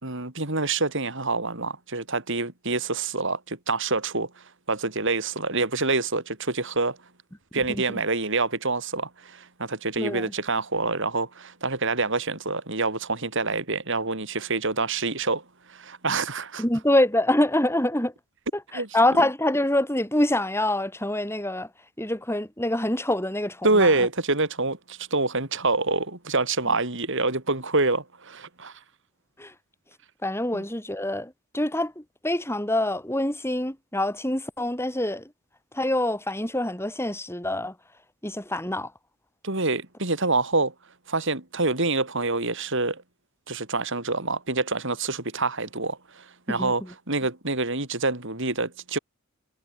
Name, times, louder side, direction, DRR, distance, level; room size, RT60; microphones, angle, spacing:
voice 1, 0.0-4.3 4.7-7.0 7.5-15.4 15.7-16.6 18.7-18.9 23.6-28.8 30.5-30.6 39.4-40.7 41.1-43.0 43.5-46.8 47.1-49.0, right 3 dB, 60° right, 4.5 m, -26 dB
voice 2, 7.7-8.0 10.0-10.3 16.6-18.1 18.5-21.7 22.0-24.1 29.4-29.5 30.2-35.3 35.7-37.8 38.2-38.9 46.5-46.9, left 1 dB, 10° left, 7.2 m, -26 dB
head